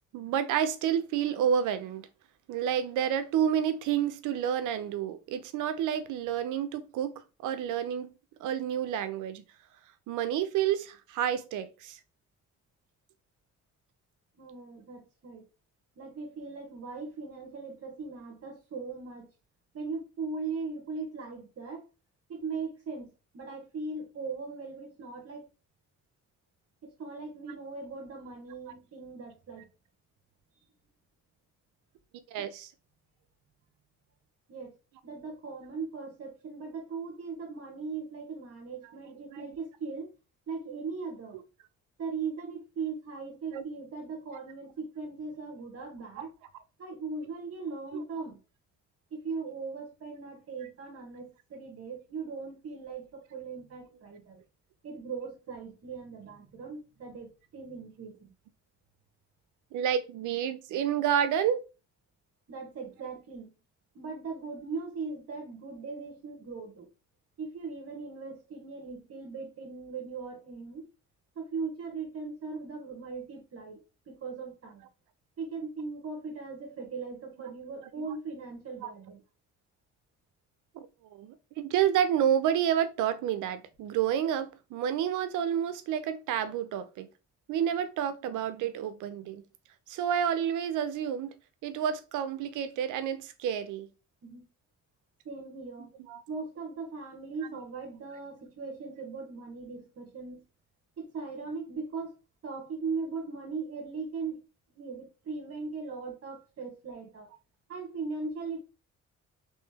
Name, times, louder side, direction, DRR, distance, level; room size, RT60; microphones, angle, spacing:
voice 1, 0.1-2.1 2.5-8.1 8.4-9.4 10.1-12.0 32.3-32.7 39.3-39.5 43.5-43.6 59.7-61.6 78.0-78.1 78.8-78.9 80.7-80.9 81.1-87.1 87.5-89.4 89.9-91.3 91.6-93.9 96.1-96.2, right 9 dB, 85° right, 0.6 m, -29 dB
voice 2, 14.4-15.4 16.0-19.3 19.7-21.8 22.3-25.5 26.8-29.7 32.3-32.5 34.5-34.7 35.0-40.1 40.5-41.4 42.0-46.3 46.8-48.4 49.1-54.4 54.8-58.3 62.5-63.5 63.9-66.9 67.4-70.8 71.3-73.8 74.1-74.8 75.4-79.2 94.2-94.5 95.2-95.9 96.3-100.4 101.0-102.1 102.4-104.4 104.7-107.3 107.7-108.6, right 4 dB, 50° right, 1.1 m, -39 dB
3.1 x 3.1 x 3.4 m
cardioid pair, 90°, 30 cm